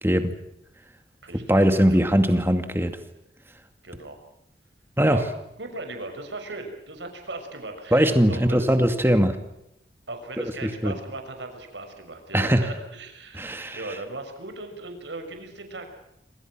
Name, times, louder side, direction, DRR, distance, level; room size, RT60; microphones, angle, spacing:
voice 1, 0.0-0.3 1.5-3.0 5.0-5.2 7.9-9.4 10.6-10.9 12.3-12.7 13.3-13.8, equal, 15° right, 8 dB, 2.3 m, -20 dB
voice 2, 1.2-2.0 3.8-4.2 5.1-5.3 5.6-8.8 10.1-15.9, right 2 dB, 80° right, 6 dB, 6.4 m, -38 dB
27.0 x 26.5 x 6.2 m, 0.82 s
head